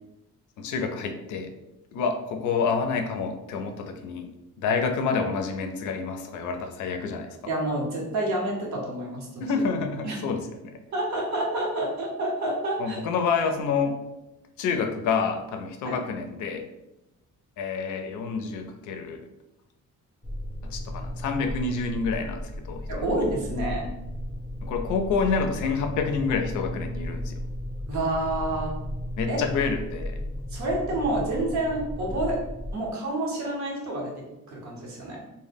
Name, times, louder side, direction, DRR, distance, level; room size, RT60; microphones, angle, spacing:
voice 1, 0.6-1.5 1.9-4.3 4.6-7.3 9.4-10.5 12.8-14.0 14.6-16.7 17.6-19.2 20.6-23.0 24.6-27.4 29.2-30.2, left 5 dB, 75° left, 5 dB, 0.4 m, -28 dB
voice 2, 7.5-9.4 10.0-10.2 10.9-13.0 15.8-15.9 22.9-23.9 27.9-28.8 29.3-29.4 30.5-32.4 32.7-35.2, right 1 dB, 70° right, -2 dB, 0.9 m, -28 dB
sound 1, 20.2-32.8, equal, 5° left, 0.5 m, -34 dB
2.1 x 2.0 x 3.3 m, 0.95 s
cardioid pair, 90°, 30 cm